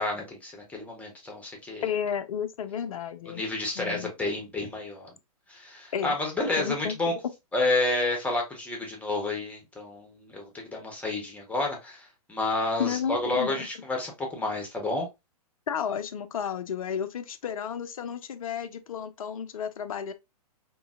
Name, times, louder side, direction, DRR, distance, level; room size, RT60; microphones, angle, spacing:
voice 1, 0.0-1.9 3.3-5.1 5.5-7.1 7.5-15.1, left 2 dB, 5° left, 1.0 m, -30 dB
voice 2, 1.8-3.4 3.8-4.1 5.9-6.2 6.6-7.2 12.8-13.7 15.7-20.1, left 8 dB, 60° left, 0.5 m, -32 dB
3.7 x 2.7 x 2.4 m
figure-of-eight pair, 110°, 20 cm